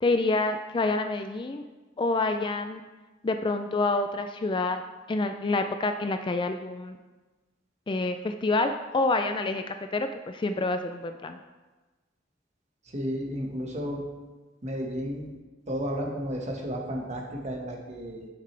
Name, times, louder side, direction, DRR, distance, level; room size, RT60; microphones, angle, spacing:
voice 1, 0.0-1.6 2.0-2.8 3.2-4.8 5.1-7.0 7.9-11.4, left 3 dB, 25° left, 7 dB, 0.3 m, -27 dB
voice 2, 12.8-14.0 14.6-15.3 15.7-18.3, equal, 35° right, -1 dB, 1.5 m, -33 dB
9.9 x 7.5 x 3.3 m, 1.2 s
head